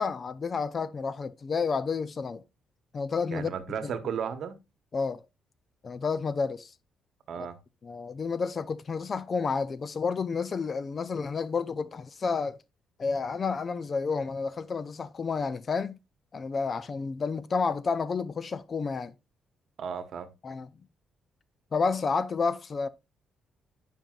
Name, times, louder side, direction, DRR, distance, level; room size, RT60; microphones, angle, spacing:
voice 1, 0.0-2.4 2.9-3.5 3.8-3.9 4.9-5.2 5.8-6.7 7.8-12.6 13.0-16.0 16.3-19.1 20.4-20.7 21.7-22.9, left 5 dB, 35° left, 0.4 m, -30 dB
voice 2, 3.3-4.6 7.3-7.6 19.8-20.3, right 7 dB, 60° right, 1.0 m, -34 dB
9.0 x 5.3 x 2.4 m
cardioid pair, 125°, 0 cm